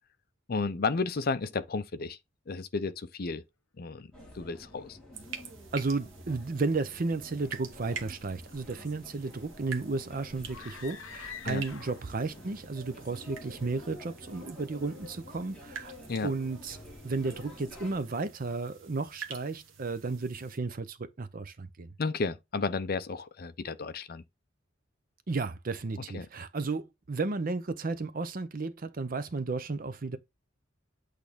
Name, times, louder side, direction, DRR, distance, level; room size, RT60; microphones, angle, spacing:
voice 1, 0.5-2.2 2.5-3.4 3.8-5.0 11.4-11.6 16.1-16.3 22.0-24.2 26.1-26.3, left 4 dB, 50° left, 0.5 m, -32 dB
sound 1, 4.1-18.0, left 1 dB, 5° left, 2.8 m, -50 dB
sound 2, 5.1-20.6, right 6 dB, 75° right, 1.1 m, -47 dB
voice 2, 5.7-15.9 16.2-16.8 17.0-21.9 25.3-30.2, right 3 dB, 45° right, 0.6 m, -33 dB
sound 3, 10.4-12.2, left 7 dB, 80° left, 0.8 m, -45 dB
8.4 x 3.3 x 3.5 m
head